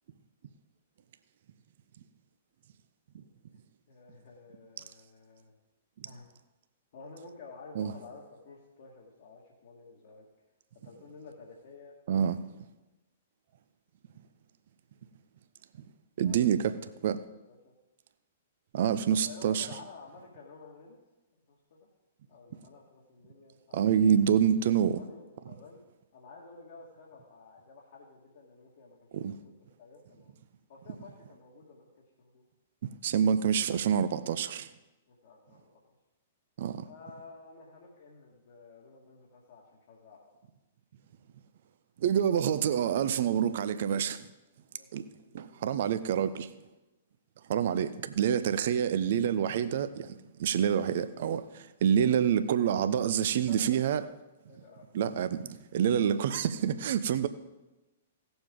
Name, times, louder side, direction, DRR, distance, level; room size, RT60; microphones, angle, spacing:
voice 1, 3.9-5.5 6.0-6.3 6.9-10.3 10.8-12.0 16.2-16.4 17.5-17.7 19.1-21.0 21.5-21.9 22.3-23.9 25.0-25.8 26.1-30.3 30.7-32.5 35.1-35.9 36.8-40.3 44.7-44.9 45.2-45.7 53.3-53.7 54.5-55.0 55.5-55.6 56.2-56.4, left 4 dB, 55° left, 2.1 m, -52 dB
voice 2, 16.2-16.7 17.0-17.2 18.7-19.7 23.7-25.0 29.1-29.3 33.0-34.7 36.6-36.9 42.0-44.3 44.9-45.0 45.3-46.5 47.5-54.0 54.9-57.3, right 8 dB, 55° right, 0.7 m, -27 dB
17.5 x 7.0 x 3.8 m
figure-of-eight pair, 110°, 0 cm